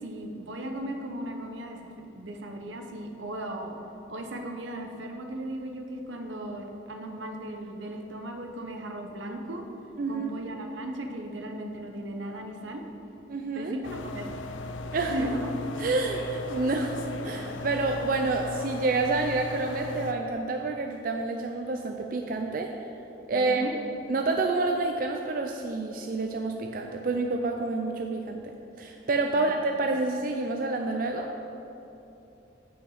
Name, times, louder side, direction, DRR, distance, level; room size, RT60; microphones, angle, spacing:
voice 1, 0.0-3.8 4.1-9.6 10.1-12.8 13.5-14.3 15.1-15.4 23.3-23.7 29.3-29.6, right 1 dB, 80° right, 3 dB, 0.9 m, -36 dB
voice 2, 10.0-10.3 13.3-13.7 14.9-15.1 15.8-22.7 23.3-23.6 24.1-28.4 28.8-31.3, right 3 dB, 45° right, 3 dB, 0.4 m, -28 dB
sound 1, 13.8-20.1, left 2 dB, 85° left, 0.5 m, -37 dB
6.3 x 5.8 x 6.5 m, 3.0 s
head